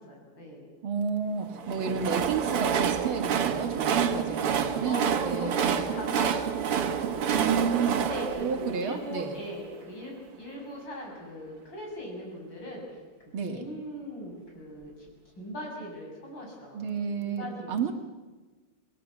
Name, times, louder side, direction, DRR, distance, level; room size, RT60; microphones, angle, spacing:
voice 1, 0.0-0.7 1.5-1.8 3.9-4.2 4.6-7.4 8.0-12.8 13.5-15.1 15.4-17.7, equal, 55° left, -1 dB, 8.1 m, -40 dB
voice 2, 0.8-5.9 7.3-8.0 8.4-9.4 13.3-13.6 16.7-17.9, right 6 dB, 70° right, 6 dB, 2.5 m, -31 dB
Train, 1.5-9.7, right 8 dB, 85° right, 2.3 m, -28 dB
28.0 x 20.5 x 7.3 m, 1.3 s
omnidirectional pair, 2.4 m